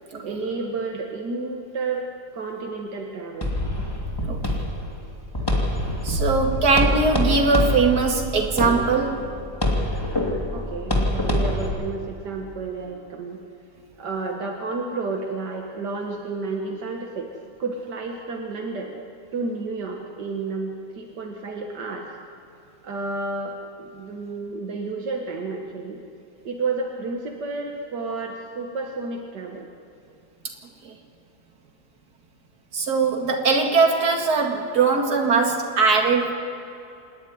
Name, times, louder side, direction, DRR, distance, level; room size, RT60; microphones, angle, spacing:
voice 1, 0.2-2.0 2.3-3.6 10.5-13.4 14.0-19.0 19.3-22.2 22.8-26.0 26.5-29.7, right 3 dB, 85° right, 1 dB, 2.1 m, -31 dB
sound 1, 3.4-11.7, left 1 dB, 15° left, 2.5 m, -25 dB
voice 2, 6.0-9.2 30.8-30.9 32.7-36.3, right 4 dB, 70° right, 2 dB, 2.6 m, -21 dB
26.5 x 11.0 x 10.0 m, 2.7 s
omnidirectional pair, 1.8 m